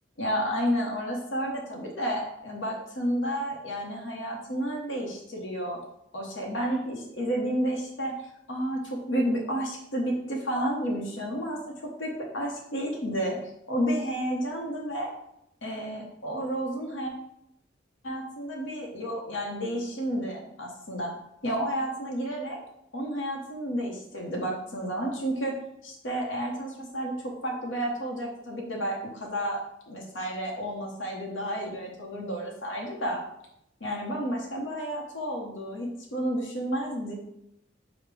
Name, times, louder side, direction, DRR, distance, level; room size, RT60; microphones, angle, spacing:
voice 1, 0.2-5.8 6.1-15.1 15.6-17.1 18.0-21.1 21.4-22.6 22.9-25.5 25.8-29.6 29.9-33.2 33.8-37.1, equal, 75° left, -1 dB, 0.8 m, -31 dB
5.0 x 2.1 x 4.7 m, 0.79 s
head